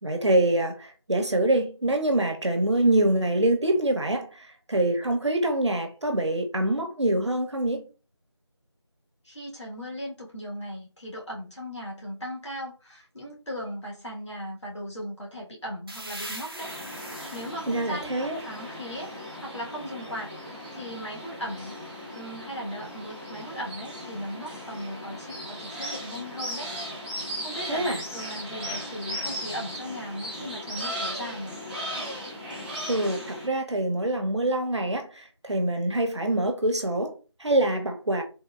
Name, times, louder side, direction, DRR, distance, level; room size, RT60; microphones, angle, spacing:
voice 1, 0.0-7.9 17.7-18.4 27.7-28.0 32.9-38.2, right 1 dB, 75° right, 0.9 m, -25 dB
voice 2, 9.2-19.1 19.4-21.7 22.1-26.7 27.2-31.6, equal, 80° left, 1.4 m, -38 dB
sound 1, 15.9-19.5, right 1 dB, 55° right, 0.7 m, -42 dB
sound 2, 16.6-33.5, equal, 20° right, 0.8 m, -37 dB
3.4 x 2.1 x 2.3 m
figure-of-eight pair, 175°, 15 cm